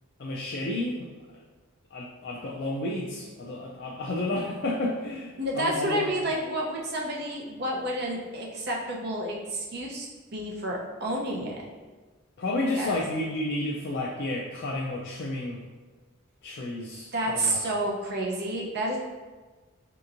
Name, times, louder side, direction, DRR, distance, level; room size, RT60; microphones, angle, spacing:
voice 1, 0.2-1.4 1.9-6.1 12.4-15.6 16.4-17.6, left 2 dB, 50° left, -3 dB, 0.4 m, -31 dB
voice 2, 5.4-10.1 10.3-11.6 12.7-13.0 17.1-19.0, right 1 dB, 50° right, -2 dB, 0.6 m, -30 dB
4.3 x 2.9 x 2.5 m, 1.3 s
head